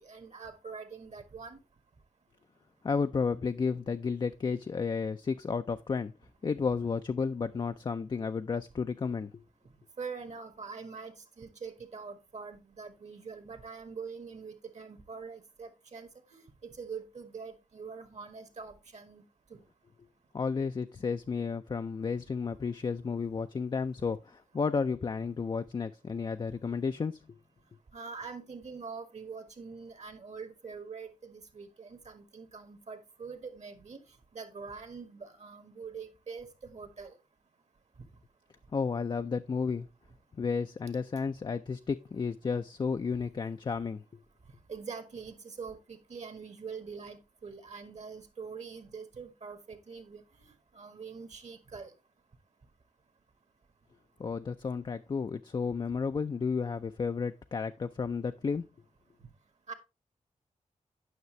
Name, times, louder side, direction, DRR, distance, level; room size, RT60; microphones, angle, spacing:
voice 1, 0.0-1.6 10.0-19.2 19.5-19.6 24.0-24.1 27.9-34.0 34.3-37.2 44.7-51.9 59.7-59.8, right 5 dB, 55° right, 1.5 m, -44 dB
voice 2, 2.8-6.1 6.4-9.4 20.3-27.4 38.7-39.9 40.4-44.0 54.2-58.6, left 5 dB, 35° left, 0.4 m, -32 dB
9.4 x 5.7 x 3.1 m
cardioid pair, 70°, 14 cm